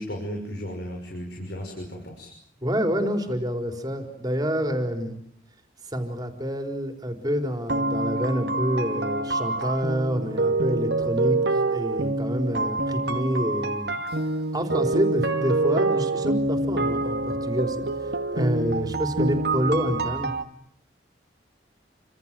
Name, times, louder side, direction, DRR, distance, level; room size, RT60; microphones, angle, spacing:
voice 1, 0.0-2.3, equal, 65° left, 2 dB, 6.2 m, -35 dB
voice 2, 2.6-5.2 5.9-11.4 11.7-14.0 14.5-17.8 18.3-20.3, equal, 20° right, 5 dB, 4.2 m, -27 dB
sound 1, 7.7-20.4, right 2 dB, 65° right, 2.3 m, -26 dB
29.5 x 26.0 x 7.7 m, 0.65 s
head